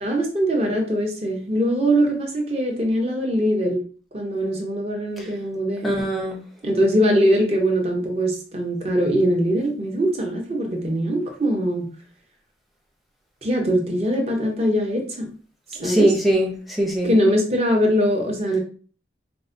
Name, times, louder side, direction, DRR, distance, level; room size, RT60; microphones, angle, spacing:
voice 1, 0.0-3.8 4.1-5.9 6.6-11.9 13.4-15.3 15.7-16.1 17.0-18.6, equal, 35° right, 0.8 m, -22 dB
voice 2, 5.8-6.4 15.7-17.1, right 1 dB, ahead, 0.7 m, -22 dB
4.6 x 2.1 x 2.6 m
head